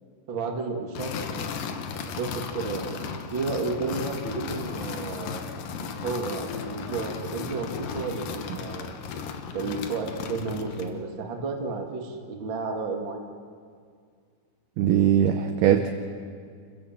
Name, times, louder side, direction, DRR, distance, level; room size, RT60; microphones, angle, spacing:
voice 1, 0.3-1.5 2.2-5.4 5.8-9.0 9.5-13.2, right 4 dB, 65° right, 1 dB, 1.2 m, -32 dB
sound 1, 0.9-11.0, left 6 dB, 80° left, 2.0 m, -35 dB
voice 2, 14.8-15.9, right 10 dB, 80° right, 6 dB, 2.2 m, -20 dB
29.0 x 16.0 x 7.4 m, 2.2 s
omnidirectional pair, 5.7 m